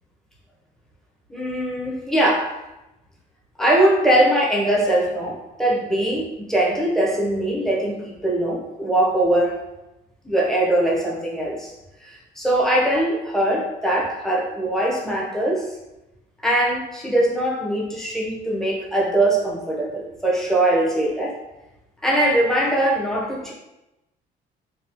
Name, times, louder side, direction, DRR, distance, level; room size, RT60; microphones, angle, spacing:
voice 1, 1.3-2.5 3.6-9.5 10.2-11.7 12.0-15.7 16.4-21.3 22.0-23.5, right 1 dB, 5° left, -4 dB, 1.0 m, -21 dB
4.0 x 2.4 x 3.0 m, 0.97 s
cardioid pair, 110°, 17 cm